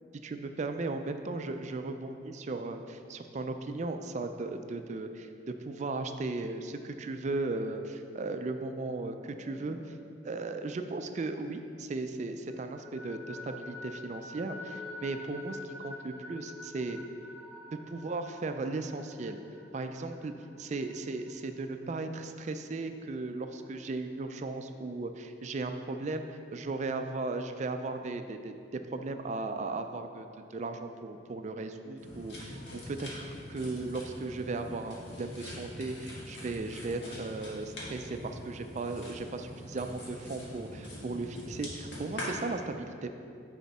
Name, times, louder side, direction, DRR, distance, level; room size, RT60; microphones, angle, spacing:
voice 1, 0.2-10.0 10.2-17.0 17.9-19.4 19.7-20.3 20.6-28.5 28.9-43.1, right 3 dB, 40° right, 7 dB, 0.4 m, -36 dB
sound 1, 9.2-11.9 12.2-21.6, left 2 dB, 10° right, 0.9 m, -48 dB
sound 2, 32.0-42.3, left 1 dB, 75° left, 1.7 m, -44 dB
9.4 x 4.2 x 4.1 m, 2.5 s
head